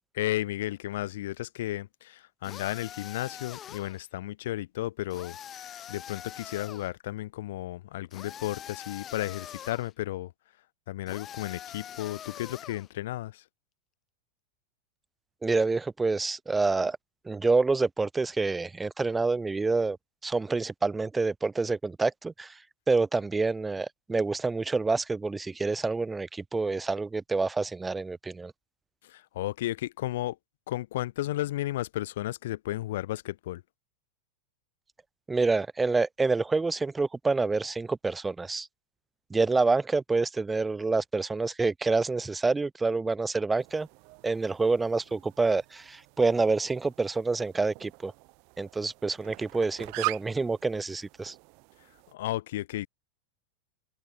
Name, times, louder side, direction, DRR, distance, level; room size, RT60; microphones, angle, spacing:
voice 1, 0.1-10.3 10.9-13.4 29.0-30.4 30.7-33.6 52.1-52.9, left 15 dB, 55° left, 2.5 m, -33 dB
sound 1, 2.4-4.0 5.1-6.9 8.1-9.9 11.1-12.9, left 10 dB, 30° left, 1.1 m, -44 dB
voice 2, 15.4-17.0 17.2-20.0 20.2-22.6 22.9-28.5 35.3-38.7 39.3-43.9 44.2-48.1 48.6-51.3, right 3 dB, 10° right, 0.8 m, -27 dB
sound 2, 43.6-52.1, right 40 dB or more, 45° right, 3.3 m, -42 dB
open air
figure-of-eight pair, 90°, 0 cm